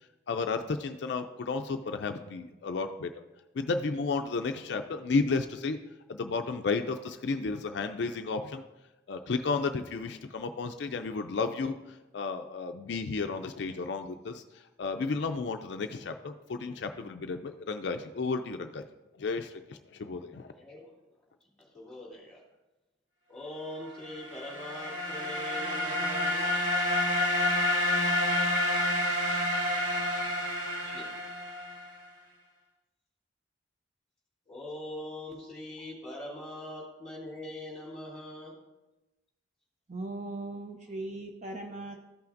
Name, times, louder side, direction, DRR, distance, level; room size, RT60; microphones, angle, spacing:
voice 1, 0.3-3.1 3.5-5.8 6.1-8.6 9.1-18.9 19.2-20.5, left 4 dB, 60° left, 6 dB, 0.4 m, -33 dB
voice 2, 20.6-20.9 21.6-22.4 23.3-26.5 30.8-31.1 34.5-38.6, left 1 dB, 5° left, -5 dB, 2.8 m, -42 dB
sound 1, 24.1-31.9, left 1 dB, 85° right, 1.5 m, -29 dB
voice 3, 39.9-42.0, right 2 dB, 35° right, 3 dB, 0.6 m, -38 dB
14.0 x 5.7 x 2.6 m, 1.1 s
head